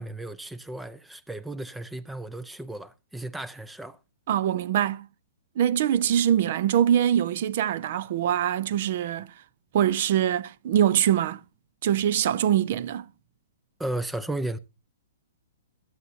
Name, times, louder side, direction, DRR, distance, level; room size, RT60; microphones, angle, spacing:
voice 1, 0.0-4.0 13.8-14.6, right 1 dB, 5° right, 0.5 m, -34 dB
voice 2, 4.3-5.1 5.6-9.3 9.7-11.4 11.8-13.0, right 10 dB, 45° right, 0.6 m, -23 dB
22.0 x 8.0 x 2.7 m
figure-of-eight pair, 115°, 0 cm